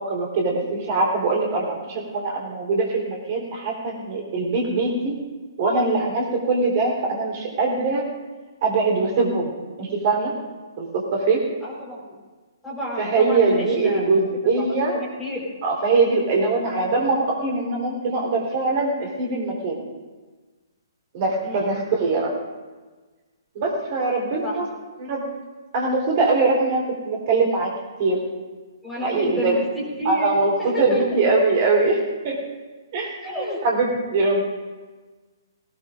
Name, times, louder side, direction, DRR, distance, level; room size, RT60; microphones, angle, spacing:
voice 1, 0.0-5.1 5.6-8.1 8.6-10.3 10.8-10.9 11.1-11.4 13.0-15.0 15.6-19.8 21.1-22.3 23.5-24.6 25.0-25.2 25.7-27.7 28.0-28.2 29.0-29.6 30.0-30.5 30.8-32.4 32.9-34.4, right 3 dB, 35° right, -1 dB, 3.8 m, -22 dB
voice 2, 11.6-12.1 12.6-14.1 14.6-14.7 14.9-15.4 21.4-21.7 24.4-24.6 28.8-30.3 30.6-31.0 33.2-33.6, left 1 dB, ahead, -6 dB, 4.4 m, -31 dB
19.5 x 19.0 x 2.6 m, 1.3 s
figure-of-eight pair, 125°, 2 cm